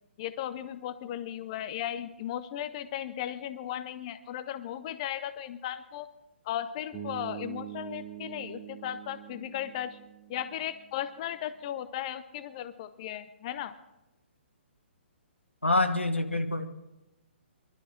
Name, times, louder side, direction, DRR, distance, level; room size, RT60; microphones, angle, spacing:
voice 1, 0.2-6.1 6.4-10.0 10.3-13.7, left 11 dB, 35° left, 13 dB, 0.6 m, -36 dB
Bass guitar, 6.9-11.0, right 10 dB, 15° left, 3.4 m, -44 dB
voice 2, 15.6-16.7, left 2 dB, 85° left, 7 dB, 1.4 m, -26 dB
23.0 x 12.5 x 3.7 m, 0.99 s
figure-of-eight pair, 130°, 6 cm